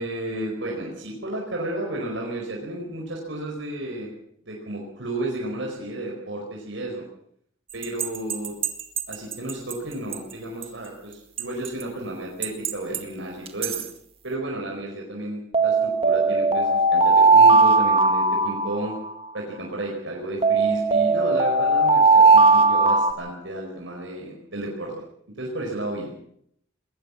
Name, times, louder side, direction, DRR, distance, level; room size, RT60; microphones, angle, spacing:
voice 1, 0.0-4.1 4.5-7.0 7.7-8.6 9.1-13.8 14.2-18.9 19.3-24.9 25.3-26.1, right 1 dB, 70° right, -1 dB, 4.9 m, -32 dB
sound 1, 7.8-9.7 10.1-10.2 10.6-10.7 11.4-11.8 12.4-13.0 13.5-13.8 15.5-19.3 20.4-23.1, right 3 dB, 30° right, 1.9 m, -18 dB
20.5 x 18.5 x 7.2 m, 0.68 s
head